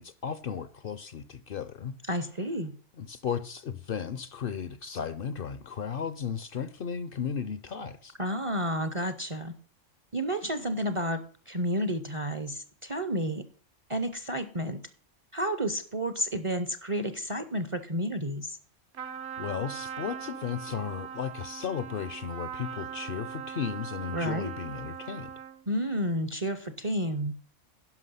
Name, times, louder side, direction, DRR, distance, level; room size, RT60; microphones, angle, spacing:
voice 1, 0.0-2.0 3.0-8.1 19.4-25.3, left 7 dB, 60° left, 0.7 m, -35 dB
voice 2, 2.1-2.7 8.2-9.6 10.1-13.4 13.9-14.8 15.3-18.6 24.1-24.5 25.7-27.3, equal, 35° right, 0.6 m, -31 dB
Trumpet, 18.9-25.6, right 8 dB, 65° right, 1.0 m, -40 dB
11.0 x 5.9 x 5.5 m
omnidirectional pair, 1.2 m